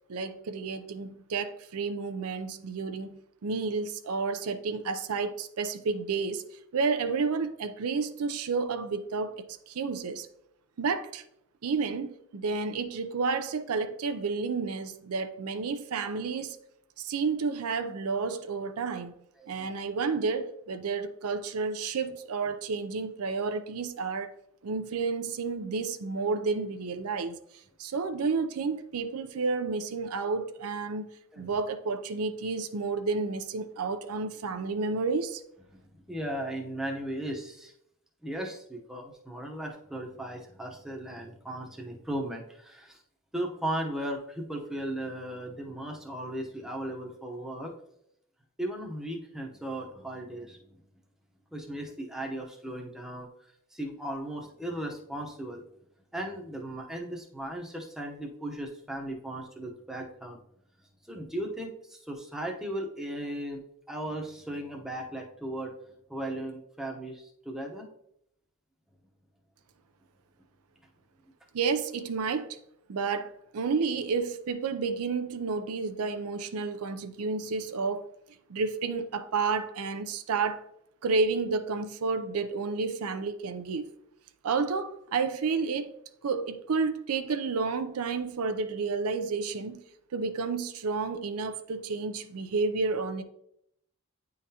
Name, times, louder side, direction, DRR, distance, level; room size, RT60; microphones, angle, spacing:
voice 1, 0.1-6.4 6.7-10.3 10.8-11.2 11.6-16.6 17.0-19.1 19.5-24.3 24.6-27.4 27.8-31.0 31.4-35.4 71.5-72.6 72.9-78.1 78.5-80.6 81.0-83.9 84.4-85.9 86.2-89.8 90.1-93.2, right 4 dB, 85° right, 0.5 m, -31 dB
voice 2, 19.4-19.7 31.3-31.5 35.7-37.7 38.2-43.0 43.3-47.7 48.6-50.9 51.5-53.3 53.7-55.6 56.1-60.4 61.1-63.6 63.9-65.7 66.1-67.9, right 1 dB, ahead, 0.7 m, -36 dB
9.3 x 3.8 x 2.8 m
head